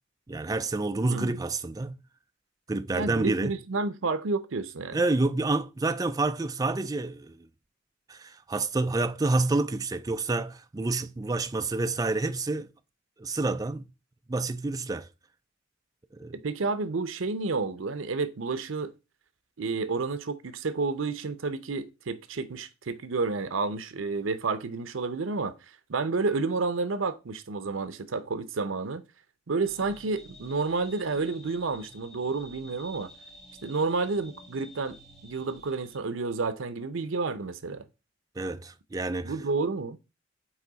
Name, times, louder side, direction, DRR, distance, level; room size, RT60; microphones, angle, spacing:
voice 1, 0.3-2.0 2.7-3.5 4.9-7.5 8.1-12.7 13.2-13.8 14.3-15.1 16.1-16.4 38.4-39.3, right 2 dB, 20° right, 0.4 m, -28 dB
voice 2, 1.0-1.4 2.9-5.0 16.4-18.9 19.6-25.6 25.9-29.0 29.5-33.1 33.6-35.0 35.2-37.9 39.2-40.0, right 4 dB, 85° right, 0.7 m, -30 dB
sound 1, 29.6-36.0, left 1 dB, ahead, 1.4 m, -50 dB
8.3 x 3.0 x 4.0 m
head